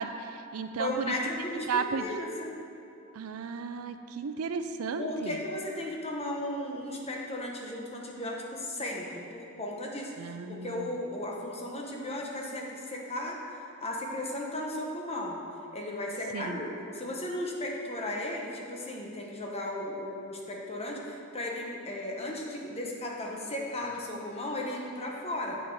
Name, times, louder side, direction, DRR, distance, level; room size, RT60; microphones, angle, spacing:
voice 1, 0.0-1.2 1.7-2.1 3.1-5.4 10.2-10.9 16.3-16.6, right 5 dB, 75° right, 9 dB, 0.4 m, -34 dB
voice 2, 0.8-2.6 5.0-10.3 10.6-13.4 13.8-15.4 15.7-25.6, left 1 dB, 30° left, -1 dB, 1.0 m, -35 dB
7.7 x 6.1 x 4.8 m, 2.7 s
head